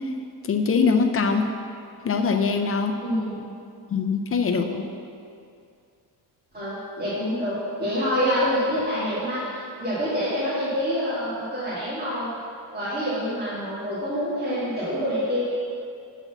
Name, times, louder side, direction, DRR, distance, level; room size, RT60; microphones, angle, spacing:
voice 1, 0.5-1.4 2.0-2.9 3.9-4.7, left 5 dB, 35° left, 4 dB, 0.5 m, -22 dB
voice 2, 3.0-3.5 4.5-4.8 6.5-12.3 12.7-15.4, equal, 25° right, -12 dB, 2.1 m, -27 dB
8.0 x 4.2 x 7.0 m, 2.4 s
cardioid pair, 140°, 39 cm